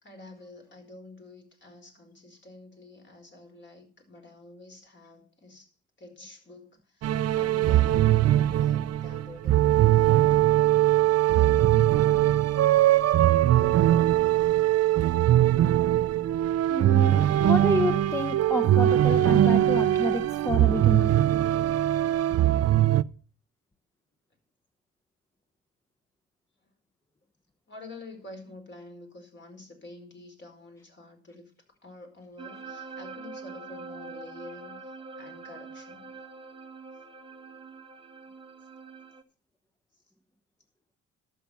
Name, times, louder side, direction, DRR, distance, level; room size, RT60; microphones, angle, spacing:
voice 1, 0.0-5.7 6.0-10.7 26.6-26.7 27.7-31.5 31.8-36.2, left 2 dB, 40° left, 4.9 m, -48 dB
sound 1, 7.0-23.0, right 13 dB, 55° right, 0.6 m, -21 dB
voice 2, 16.7-21.1, left 1 dB, 10° left, 1.1 m, -29 dB
sound 2, 32.4-39.2, right 4 dB, 20° right, 1.2 m, -44 dB
12.0 x 7.6 x 7.0 m
cardioid pair, 90°, 30 cm